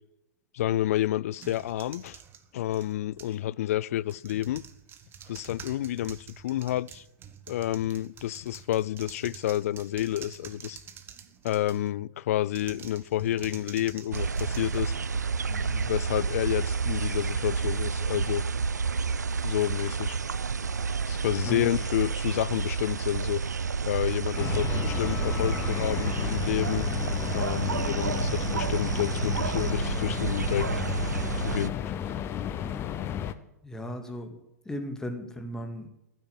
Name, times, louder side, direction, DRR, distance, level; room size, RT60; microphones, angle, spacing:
voice 1, 0.5-2.2 2.5-4.6 5.3-7.0 7.5-10.8 11.4-14.9 15.5-18.4 19.4-20.2 21.1-23.4 23.9-26.9 27.3-30.8 31.4-31.8, left 13 dB, 60° left, 0.4 m, -29 dB
sound 1, 1.4-3.4 4.0-12.0 12.5-15.4, right 8 dB, 25° right, 1.2 m, -48 dB
sound 2, 14.1-31.7, right 5 dB, 85° right, 0.4 m, -30 dB
voice 2, 21.4-21.8 33.6-34.4 34.7-35.9, equal, 5° left, 2.1 m, -36 dB
sound 3, 24.4-33.3, left 9 dB, 25° left, 0.8 m, -33 dB
12.0 x 9.6 x 7.4 m
figure-of-eight pair, 110°, 9 cm